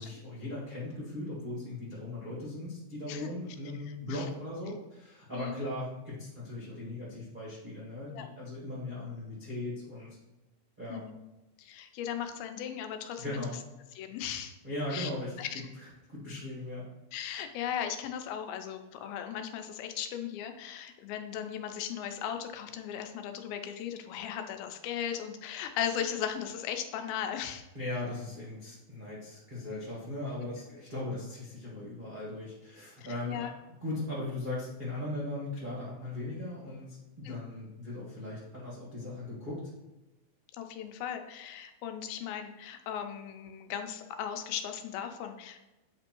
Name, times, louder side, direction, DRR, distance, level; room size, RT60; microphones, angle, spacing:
voice 1, 0.0-10.2 10.8-11.0 13.2-13.6 14.6-15.3 15.7-16.9 27.7-33.5 33.8-39.7, left 2 dB, 60° right, -8 dB, 0.5 m, -38 dB
voice 2, 11.6-13.4 14.0-14.6 14.9-15.1 15.4-15.6 17.1-27.7 33.0-33.5 37.2-37.4 40.5-45.6, left 9 dB, 85° left, 6 dB, 2.5 m, -37 dB
8.4 x 3.4 x 4.5 m, 1.0 s
omnidirectional pair, 4.2 m